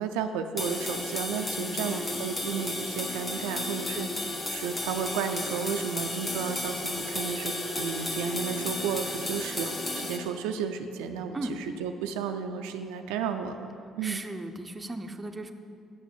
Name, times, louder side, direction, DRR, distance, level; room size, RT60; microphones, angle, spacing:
voice 1, 0.0-4.1 4.5-11.4 11.8-13.7 14.0-14.2, right 7 dB, 85° right, 6 dB, 0.4 m, -33 dB
sound 1, 0.6-10.2, left 1 dB, 30° left, 1.4 m, -33 dB
voice 2, 1.6-2.2 3.9-4.2 11.3-11.6 14.0-15.5, right 1 dB, 25° right, 6 dB, 0.7 m, -37 dB
7.0 x 6.3 x 7.0 m, 2.5 s
hypercardioid pair, 60°, 0 cm